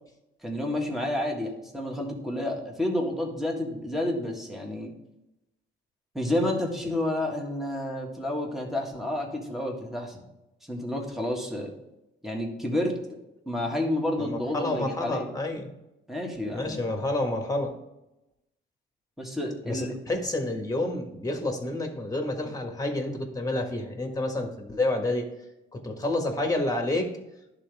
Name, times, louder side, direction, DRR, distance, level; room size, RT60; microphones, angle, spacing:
voice 1, 0.4-4.9 6.1-10.2 10.7-11.7 12.2-13.0 13.5-15.3 16.1-16.9 19.2-19.9, left 1 dB, ahead, -1 dB, 1.7 m, -30 dB
voice 2, 14.2-15.7 16.5-17.7 19.6-25.2 25.7-27.1, left 2 dB, 15° left, 3 dB, 1.6 m, -29 dB
11.5 x 3.9 x 3.5 m, 0.91 s
cardioid pair, 90°, 20 cm